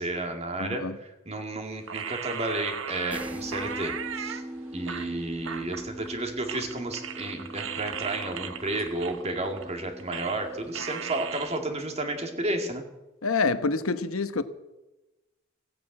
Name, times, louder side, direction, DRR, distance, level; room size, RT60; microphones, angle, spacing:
voice 1, 0.0-4.4 4.7-12.8, right 2 dB, 30° right, 5 dB, 2.1 m, -32 dB
voice 2, 0.6-1.0 13.2-14.4, left 4 dB, 85° left, 11 dB, 1.1 m, -27 dB
sound 1, 1.9-4.4 4.9-6.2 6.5-10.5 10.7-11.6, right 7 dB, 65° right, 1.1 m, -37 dB
sound 2, 3.1-12.7, right 1 dB, 5° right, 1.4 m, -42 dB
16.5 x 9.1 x 8.7 m, 1.0 s
head